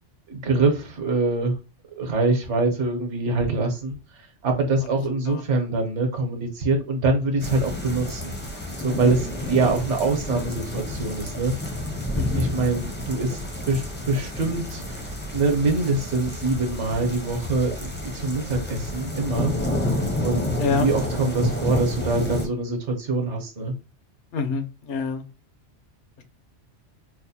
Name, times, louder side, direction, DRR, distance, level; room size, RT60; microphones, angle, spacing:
voice 1, 0.3-1.6 2.0-4.0 4.4-8.3 8.8-11.7 12.4-13.4 13.7-15.0 15.3-19.5 20.2-23.7, right 3 dB, 70° right, 4 dB, 1.2 m, -24 dB
sound 1, 7.4-22.5, left 1 dB, 15° left, 0.4 m, -30 dB
voice 2, 20.6-20.9 24.3-25.3 26.2-26.3, left 5 dB, 70° left, 7 dB, 0.9 m, -27 dB
4.4 x 2.1 x 2.7 m, 0.30 s
omnidirectional pair, 1.2 m